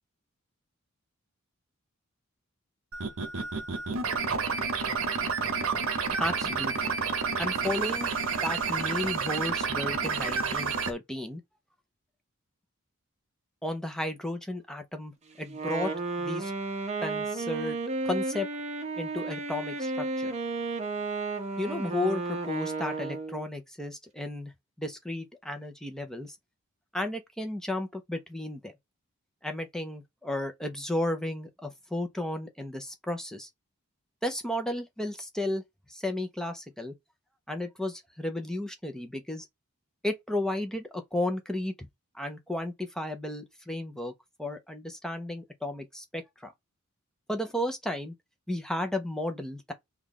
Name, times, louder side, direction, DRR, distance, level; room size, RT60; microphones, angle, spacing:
sound 1, 2.9-10.9, right 5 dB, 65° right, 0.8 m, -30 dB
voice 1, 6.2-7.0 7.4-8.1 8.4-11.4 13.6-15.1 15.4-15.9 16.2-16.5 17.0-17.8 18.0-18.5 19.0-20.3 21.6-24.5 24.8-26.4 26.9-28.7 29.4-33.5 34.2-35.6 35.9-36.9 37.5-39.5 40.0-41.9 42.1-44.1 44.4-46.5 47.3-48.1 48.5-49.7, left 1 dB, 5° left, 0.6 m, -33 dB
Wind instrument woodwind instrument, 15.5-23.4, right 3 dB, 30° right, 0.7 m, -33 dB
3.2 x 2.3 x 3.7 m
head